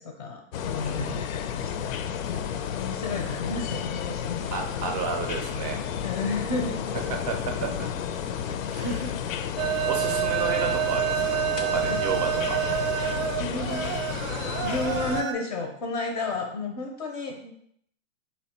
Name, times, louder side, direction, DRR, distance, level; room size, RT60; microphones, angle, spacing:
voice 1, 0.0-1.9 2.3-4.4 6.0-7.1 8.5-8.6 8.8-9.1 11.9-12.0 13.0-13.9 14.6-17.5, left 3 dB, 30° left, 3 dB, 0.4 m, -32 dB
sound 1, 0.5-15.2, left 8 dB, 90° left, 0.5 m, -32 dB
voice 2, 0.8-1.2 4.5-5.8 7.3-7.9 8.6-9.0 9.8-12.6, right 5 dB, 35° right, 3 dB, 0.4 m, -32 dB
sound 2, 9.6-15.3, right 11 dB, 85° right, 0.6 m, -28 dB
4.2 x 2.2 x 4.1 m, 0.69 s
hypercardioid pair, 150°, 39 cm